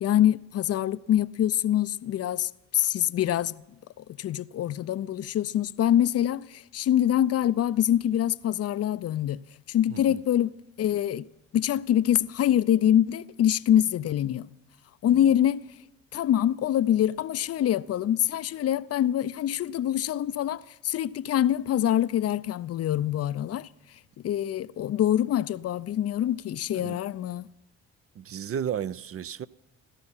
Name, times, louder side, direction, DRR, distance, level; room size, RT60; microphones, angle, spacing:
voice 1, 0.0-3.6 4.0-10.5 10.8-11.3 11.5-14.5 15.0-15.6 16.1-23.7 24.2-27.5, left 11 dB, 40° left, 0.5 m, -25 dB
voice 2, 9.9-10.2 26.7-27.0 28.2-29.5, right 8 dB, 40° right, 0.5 m, -33 dB
16.0 x 13.0 x 5.7 m
hypercardioid pair, 55°, 38 cm